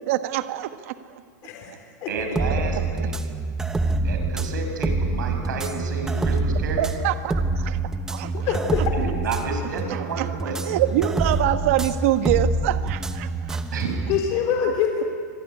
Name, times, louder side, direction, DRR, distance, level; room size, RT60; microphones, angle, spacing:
voice 1, 0.1-1.2 6.8-7.8 8.1-8.3 10.2-10.3 10.6-13.6, right 13 dB, 50° right, 9 dB, 1.4 m, -25 dB
voice 2, 1.4-2.1 8.3-9.0 14.1-15.0, left 7 dB, 35° left, 3 dB, 3.8 m, -25 dB
voice 3, 2.1-3.2 4.0-6.9 8.9-10.7 13.7-13.9, right 5 dB, 90° right, 4 dB, 6.9 m, -31 dB
sound 1, 2.2-14.2, right 2 dB, 5° right, 0.9 m, -26 dB
25.0 x 22.0 x 9.9 m, 2.1 s
supercardioid pair, 170°, 10 cm